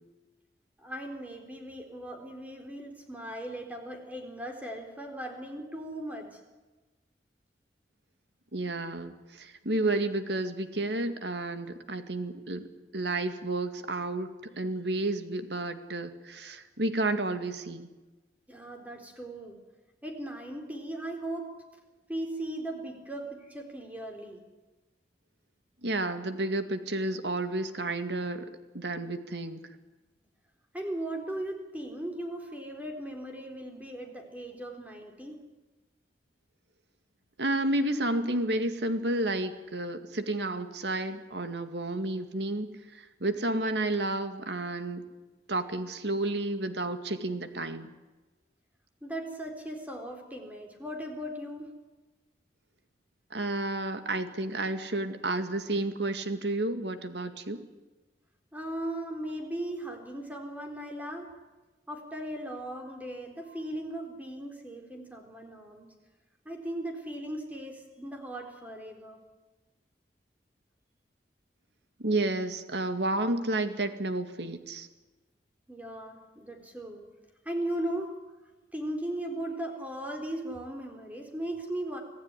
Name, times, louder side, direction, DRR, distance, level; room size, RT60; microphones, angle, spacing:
voice 1, 0.8-6.4 18.5-19.6 20.0-21.5 22.1-24.4 30.7-35.4 49.0-51.7 58.5-61.3 61.9-65.9 66.5-69.2 75.7-77.0 77.4-78.1 78.7-82.0, right 1 dB, 10° right, 3 dB, 3.9 m, -37 dB
voice 2, 8.5-12.7 12.9-14.3 14.6-17.9 25.8-28.5 28.7-29.6 37.4-42.7 42.9-45.0 45.5-47.9 53.3-57.6 72.0-74.9, right 2 dB, 85° right, 9 dB, 2.2 m, -31 dB
26.0 x 16.0 x 10.0 m, 1.2 s
head